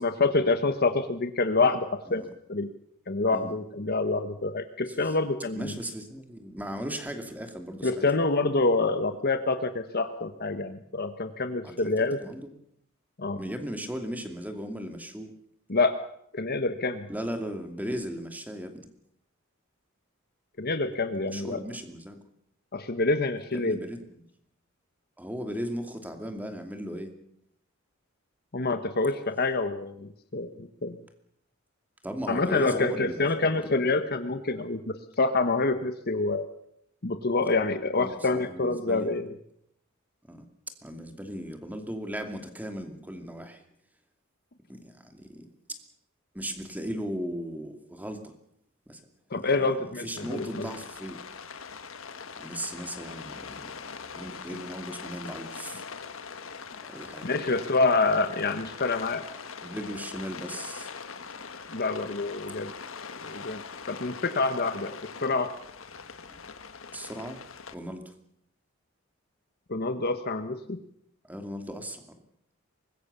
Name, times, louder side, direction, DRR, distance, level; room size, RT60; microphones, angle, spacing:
voice 1, 0.0-2.2 2.5-2.7 3.1-5.8 7.8-12.2 13.2-13.4 15.7-16.0 16.3-17.1 20.6-21.6 22.7-23.8 28.5-31.0 32.3-36.5 37.0-39.3 49.3-50.7 57.2-59.2 61.7-62.7 63.2-63.6 63.9-65.5 69.7-70.8, left 3 dB, 50° left, 8 dB, 1.2 m, -27 dB
voice 2, 5.5-8.0 11.6-11.9 12.2-12.5 13.4-15.3 17.1-18.7 21.3-22.2 23.5-24.2 25.2-27.1 32.0-33.8 38.0-39.1 40.2-40.5 40.8-43.6 44.7-45.8 46.3-48.3 48.9-49.0 49.4-51.2 52.4-53.8 54.1-55.9 56.9-57.4 59.6-60.9 66.9-67.4 67.7-68.1 71.3-72.0, equal, 10° right, 6 dB, 2.6 m, -37 dB
Rain, 50.2-67.7, left 5 dB, 70° left, 1.5 m, -42 dB
24.0 x 20.5 x 6.9 m, 0.74 s
head